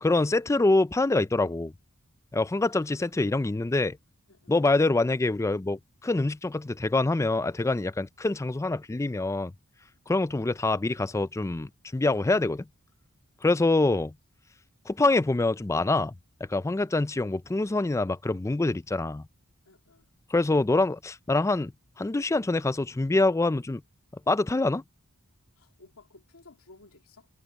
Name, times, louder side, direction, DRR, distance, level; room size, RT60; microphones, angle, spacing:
voice 1, 0.0-1.7 2.3-4.0 4.5-9.5 10.1-12.6 13.4-14.1 14.9-16.1 16.5-19.3 20.3-21.7 22.0-23.8 24.3-24.8, left 2 dB, 15° left, 0.4 m, -25 dB
voice 2, 2.7-3.1 4.3-4.6 19.6-20.1 25.6-27.3, left 3 dB, 85° left, 2.5 m, -56 dB
head